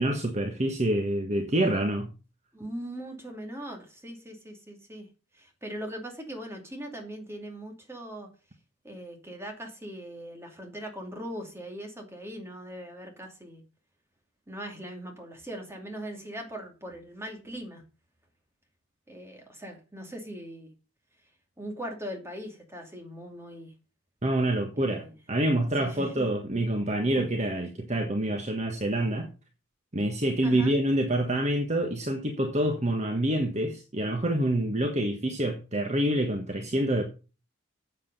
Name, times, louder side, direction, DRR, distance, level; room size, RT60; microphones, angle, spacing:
voice 1, 0.0-2.1 24.2-29.3 29.9-37.0, right 1 dB, 35° right, 1.4 m, -27 dB
voice 2, 2.5-5.1 5.3-8.3 8.8-13.6 14.5-17.8 19.1-20.7 21.6-23.7 24.8-25.2 25.8-26.3 30.4-30.7, equal, 10° right, 2.6 m, -40 dB
8.2 x 7.9 x 5.4 m
head